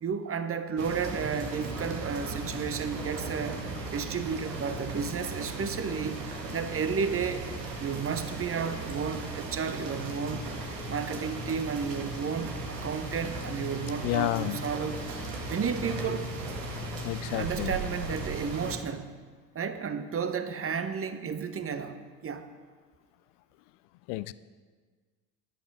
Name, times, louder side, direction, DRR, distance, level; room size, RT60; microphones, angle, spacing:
voice 1, 0.0-3.6 3.9-6.2 6.5-7.5 7.8-10.5 10.9-15.0 15.5-16.3 17.3-19.1 19.5-22.5, right 6 dB, 25° right, 10 dB, 1.1 m, -32 dB
sound 1, 0.8-18.8, right 2 dB, 75° right, 2.0 m, -37 dB
voice 2, 14.0-14.6 17.0-17.7 24.1-24.3, left 17 dB, 55° left, 17 dB, 0.6 m, -30 dB
13.5 x 11.0 x 4.9 m, 1.5 s
figure-of-eight pair, 60°, 49 cm